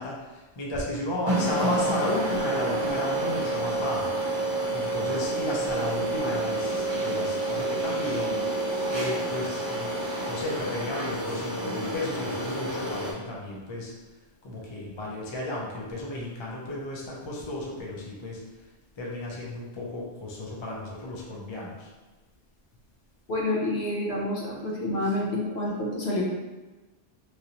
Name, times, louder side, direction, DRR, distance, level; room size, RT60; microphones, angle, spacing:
voice 1, 0.0-4.1 4.7-8.4 8.8-13.9 14.4-18.4 19.0-21.9, left 2 dB, 35° left, -4 dB, 0.5 m, -33 dB
sound 1, 1.3-13.1, right 2 dB, 35° right, 0.4 m, -29 dB
voice 2, 23.3-26.2, left 1 dB, 65° left, -3 dB, 0.9 m, -28 dB
3.2 x 2.6 x 2.8 m, 1.2 s
omnidirectional pair, 1.2 m